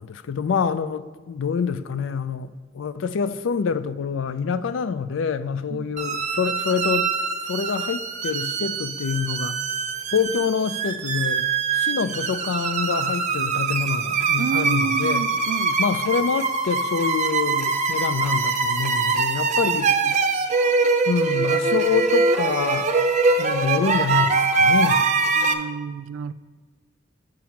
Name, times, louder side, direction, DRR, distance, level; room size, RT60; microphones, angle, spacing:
voice 1, 0.0-7.1 7.5-9.6 10.1-15.2 15.8-19.9 21.1-22.9 23.4-25.2, left 6 dB, 70° left, 0.4 m, -26 dB
sound 1, 6.0-25.5, right 4 dB, 40° right, 0.6 m, -23 dB
voice 2, 14.4-15.8 19.7-19.8 20.0-20.2 25.3-26.3, right 6 dB, 80° right, 0.3 m, -30 dB
7.4 x 5.1 x 5.8 m
head